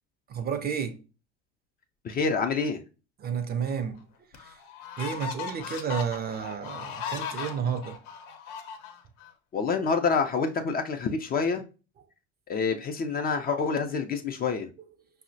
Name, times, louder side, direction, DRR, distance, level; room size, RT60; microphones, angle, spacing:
voice 1, 0.3-1.0 3.2-4.0 4.3-4.6 5.0-8.0, right 7 dB, 30° right, 0.5 m, -31 dB
voice 2, 2.0-2.8 9.5-11.6 12.5-14.7, left 5 dB, 30° left, 0.4 m, -27 dB
sound 1, 3.7-3.8 4.3-9.3, left 6 dB, 65° left, 0.7 m, -38 dB
5.4 x 2.0 x 2.5 m
hypercardioid pair, 75°, 34 cm